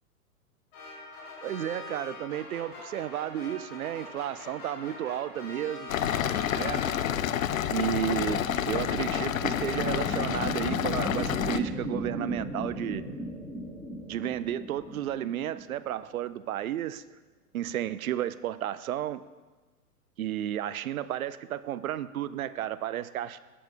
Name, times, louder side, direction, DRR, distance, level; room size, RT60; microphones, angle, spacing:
sound 1, 0.7-7.3, left 2 dB, 40° left, 2.5 m, -43 dB
voice 1, 1.4-5.9 6.5-6.8 7.7-13.1 14.1-17.0 17.5-19.2 20.2-23.4, right 11 dB, 65° right, 16 dB, 0.5 m, -32 dB
sound 2, 5.9-11.6, left 10 dB, 60° left, 0.5 m, -29 dB
sound 3, 6.4-16.1, equal, 5° left, 0.9 m, -37 dB
7.4 x 6.4 x 5.5 m, 1.3 s
figure-of-eight pair, 110°, 46 cm